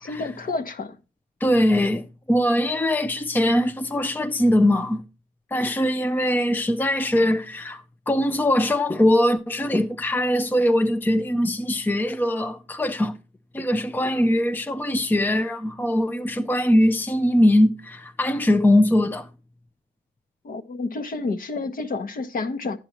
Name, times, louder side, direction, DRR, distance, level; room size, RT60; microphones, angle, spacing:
voice 1, 0.0-1.0 20.4-22.8, left 3 dB, 45° left, 1.3 m, -29 dB
voice 2, 1.4-5.0 5.5-13.2 13.5-19.3, left 1 dB, 10° left, 0.6 m, -21 dB
10.5 x 8.8 x 3.0 m
cardioid pair, 90°, 20 cm